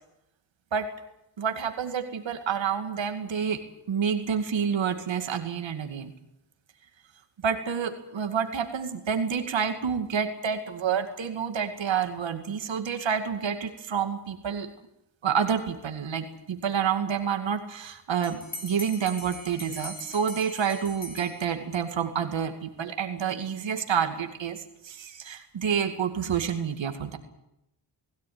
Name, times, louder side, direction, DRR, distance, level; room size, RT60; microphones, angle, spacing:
voice 1, 1.4-6.1 7.4-14.7 15.2-27.2, right 7 dB, 90° right, 7 dB, 2.3 m, -29 dB
Bell, 18.2-21.9, left 1 dB, 20° left, 5.1 m, -42 dB
20.5 x 16.5 x 9.5 m, 0.82 s
wide cardioid pair, 95°, 44 cm